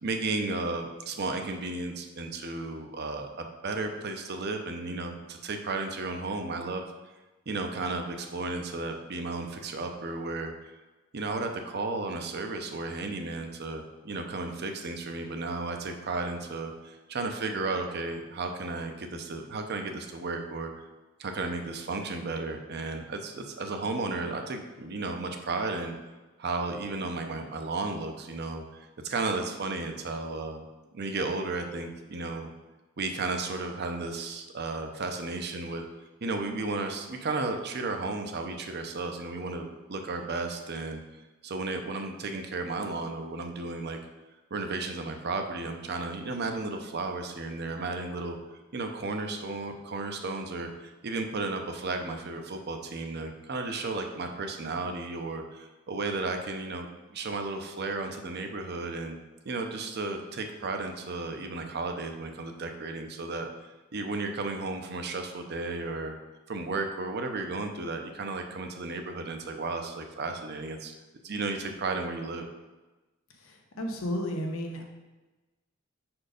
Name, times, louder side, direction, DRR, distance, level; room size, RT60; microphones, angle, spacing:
voice 1, 0.0-6.8 7.5-10.5 11.1-20.8 21.2-25.9 26.4-30.7 30.9-32.5 33.0-35.8 36.2-41.0 41.4-44.0 44.5-48.4 48.7-59.2 59.4-63.5 63.9-66.2 66.5-70.9 71.2-72.5, right 3 dB, 50° right, 5 dB, 0.7 m, -34 dB
voice 2, 73.4-74.8, equal, 85° left, 1 dB, 1.1 m, -33 dB
5.1 x 4.4 x 5.0 m, 1.2 s
head